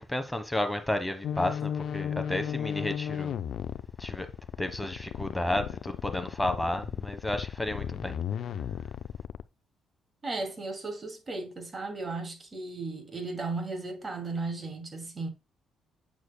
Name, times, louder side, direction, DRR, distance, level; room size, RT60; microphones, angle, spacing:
voice 1, 0.1-3.3 4.0-4.3 4.6-8.2, left 1 dB, 5° left, 1.2 m, -32 dB
sound 1, 1.2-9.4, left 9 dB, 70° left, 0.4 m, -34 dB
voice 2, 10.2-15.3, right 3 dB, 30° right, 2.3 m, -35 dB
8.2 x 6.5 x 2.2 m
cardioid pair, 90°, 0 cm